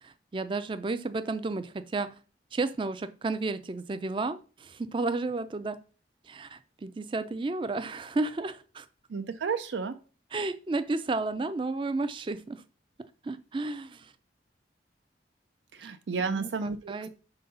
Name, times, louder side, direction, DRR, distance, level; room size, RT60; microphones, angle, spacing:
voice 1, 0.0-2.1 2.5-5.8 6.3-8.9 10.3-12.6 13.2-14.1 16.2-17.1, right 3 dB, 30° right, 13 dB, 0.4 m, -32 dB
voice 2, 9.1-10.0 15.7-17.1, right 5 dB, 85° right, 9 dB, 0.5 m, -32 dB
4.6 x 4.0 x 5.5 m, 0.37 s
head